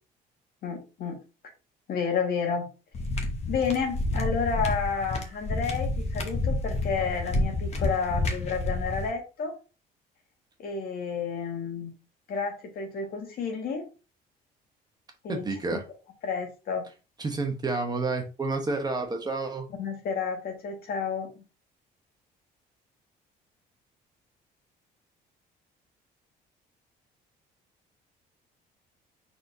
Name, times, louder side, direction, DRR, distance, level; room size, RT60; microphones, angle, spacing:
voice 1, 0.6-1.2 1.9-2.7 3.5-9.5 10.6-11.9 12.3-13.9 15.2-15.8 16.2-16.8 19.8-21.4, left 5 dB, 65° left, 3 dB, 1.6 m, -31 dB
sound 1, 2.9-9.1, left 2 dB, 40° left, 1.1 m, -29 dB
voice 2, 15.3-15.8 17.2-19.7, right 3 dB, 25° right, 4 dB, 1.1 m, -29 dB
4.2 x 3.8 x 2.7 m, 0.31 s
cardioid pair, 110°, 17 cm